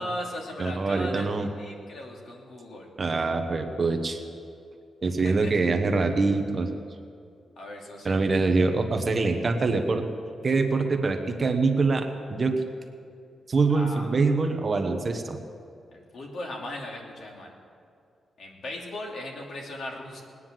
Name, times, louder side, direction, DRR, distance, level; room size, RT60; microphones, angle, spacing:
voice 1, 0.0-2.9 5.2-5.5 7.6-8.2 13.7-14.2 15.9-17.5 18.4-20.2, left 1 dB, 60° left, -1 dB, 2.8 m, -37 dB
voice 2, 0.6-1.5 3.0-4.2 5.0-6.7 8.0-10.0 10.4-12.7 13.5-15.4, right 3 dB, 30° right, 5 dB, 1.1 m, -24 dB
19.5 x 9.8 x 7.5 m, 2.4 s
wide cardioid pair, 165°, 0 cm